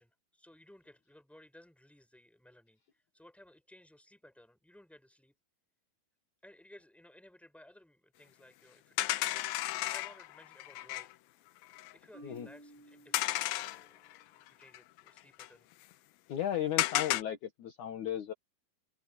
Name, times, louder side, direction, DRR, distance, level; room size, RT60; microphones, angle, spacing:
voice 1, 0.0-5.4 6.4-11.1 11.9-16.0, left 1 dB, ahead, 5.7 m, -59 dB
sound 1, 9.0-11.1 11.6-11.9 13.1-14.2 14.5-14.6 14.7-15.5 16.8-17.2, left 16 dB, 85° left, 2.6 m, -33 dB
Marimba xylophone, 12.1-14.2, right 1 dB, 50° right, 9.4 m, -55 dB
voice 2, 16.3-18.3, left 10 dB, 60° left, 2.6 m, -35 dB
omnidirectional pair, 4.2 m